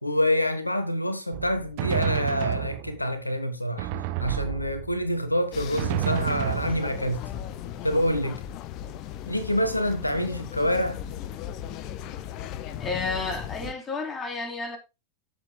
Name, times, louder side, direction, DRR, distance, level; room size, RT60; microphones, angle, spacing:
voice 1, 0.0-3.9 4.2-7.2 7.8-8.4 9.3-11.0, equal, 85° left, 1.3 m, -26 dB
Drum, 1.3-3.2 3.8-5.1 5.8-7.3, right 11 dB, 45° right, 1.0 m, -30 dB
sound 1, 5.5-13.7, left 10 dB, 40° left, 1.0 m, -37 dB
voice 2, 12.8-14.8, left 3 dB, 20° left, 3.3 m, -31 dB
15.0 x 7.4 x 2.2 m
figure-of-eight pair, 90°, 0 cm